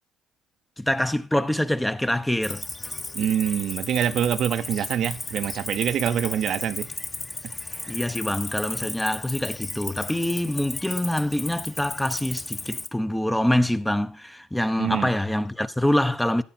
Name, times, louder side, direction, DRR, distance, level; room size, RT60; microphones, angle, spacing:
voice 1, 0.8-2.6 7.9-16.4, left 1 dB, 5° left, 0.8 m, -25 dB
Cricket, 2.4-12.9, left 2 dB, 20° left, 1.2 m, -35 dB
voice 2, 3.1-6.9 7.8-8.0 14.8-15.1, right 9 dB, 60° right, 0.8 m, -25 dB
13.5 x 9.0 x 4.3 m
supercardioid pair, 85°, 0 cm